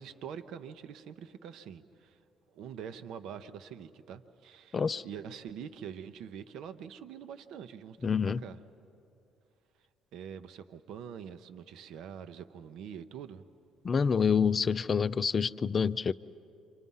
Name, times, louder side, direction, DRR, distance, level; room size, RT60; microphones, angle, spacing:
voice 1, 0.0-2.2 2.5-8.6 10.1-13.4, right 8 dB, 75° right, 9 dB, 0.7 m, -45 dB
voice 2, 4.7-5.0 8.0-8.4 13.8-16.1, left 6 dB, 40° left, 14 dB, 0.5 m, -27 dB
28.5 x 25.0 x 5.5 m, 2.7 s
supercardioid pair, 65°, 0 cm